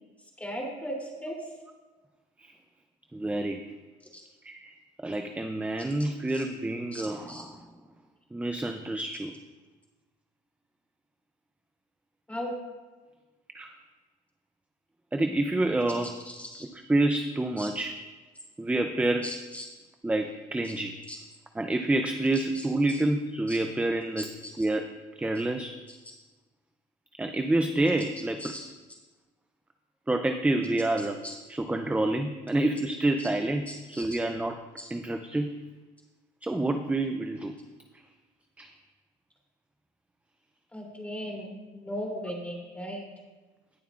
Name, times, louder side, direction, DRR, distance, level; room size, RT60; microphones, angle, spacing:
voice 1, 0.4-1.3 4.1-4.2 6.3-6.4 6.9-7.4 12.3-12.5 16.2-16.6 17.6-17.7 19.2-19.7 20.6-20.7 21.1-21.2 22.5-23.0 23.5-23.6 24.2-24.6 25.9-26.0 28.4-28.7 31.2-31.4 33.2-33.3 33.7-34.2 34.8-34.9 40.7-41.5 41.7-43.0, equal, 10° left, -2 dB, 3.1 m, -38 dB
voice 2, 3.1-3.6 4.4-4.7 5.0-7.6 8.3-9.3 13.5-13.7 15.1-16.1 16.9-17.9 18.6-19.3 20.0-21.0 21.6-24.3 24.6-24.9 25.2-25.7 27.2-28.5 30.1-31.2 31.5-34.6 34.9-35.5 36.4-37.5 38.6-38.7, right 2 dB, 10° right, 6 dB, 0.6 m, -28 dB
18.5 x 7.0 x 2.5 m, 1.3 s
cardioid pair, 110°, 17 cm